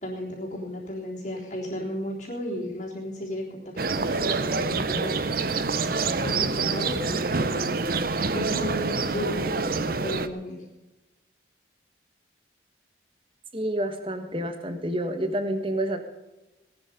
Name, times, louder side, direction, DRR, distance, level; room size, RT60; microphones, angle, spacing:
voice 1, 0.0-5.2 6.2-7.6 8.3-10.6, equal, 40° left, -4 dB, 3.7 m, -34 dB
sound 1, 3.8-10.3, right 4 dB, 50° right, 0.8 m, -26 dB
voice 2, 13.5-16.0, right 1 dB, 30° right, 7 dB, 1.5 m, -28 dB
18.5 x 11.5 x 5.2 m, 1.1 s
head